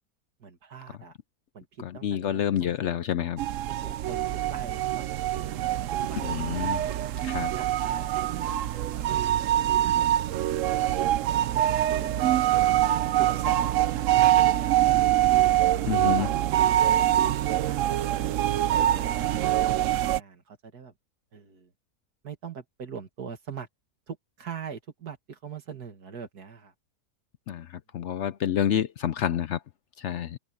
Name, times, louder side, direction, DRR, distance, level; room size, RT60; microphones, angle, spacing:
voice 1, 0.4-1.1 1.5-2.7 3.7-6.5 7.5-9.4 9.8-10.1 10.6-15.1 15.7-18.7 19.3-20.9 21.3-21.7 22.2-23.7 24.1-26.7, right 7 dB, 90° right, 2.5 m, -43 dB
voice 2, 1.8-3.4 6.2-6.8 7.2-7.5 15.9-16.3 27.5-27.7 27.9-29.6 30.0-30.4, left 10 dB, 65° left, 0.7 m, -28 dB
sound 1, 3.4-20.2, right 12 dB, 65° right, 0.9 m, -24 dB
open air
omnidirectional pair, 1.6 m